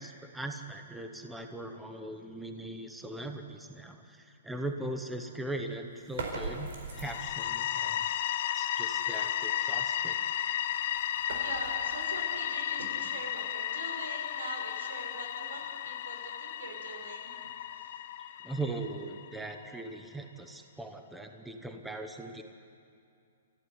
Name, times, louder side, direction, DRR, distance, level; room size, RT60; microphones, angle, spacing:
voice 1, 0.0-6.7 7.0-8.0 8.5-10.2 18.4-22.4, right 2 dB, ahead, 5 dB, 0.8 m, -40 dB
sound 1, 6.0-7.6 10.3-13.3, right 3 dB, 55° right, 4.7 m, -42 dB
sound 2, 6.9-19.6, left 11 dB, 35° left, 0.7 m, -34 dB
voice 2, 11.2-17.3 17.7-18.0, right 2 dB, 90° right, 2 dB, 6.4 m, -43 dB
27.5 x 15.0 x 9.9 m, 2.4 s
hypercardioid pair, 180°, 0 cm